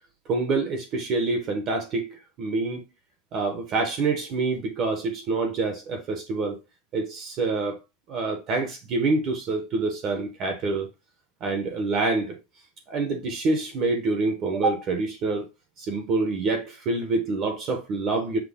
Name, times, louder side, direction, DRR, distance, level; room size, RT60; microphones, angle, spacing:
voice 1, 0.3-2.9 3.3-6.6 6.9-7.8 8.1-10.9 11.4-12.4 12.9-15.4 15.8-18.4, right 3 dB, 30° right, 0.8 m, -26 dB
5.9 x 2.3 x 3.5 m
supercardioid pair, 175°, 0 cm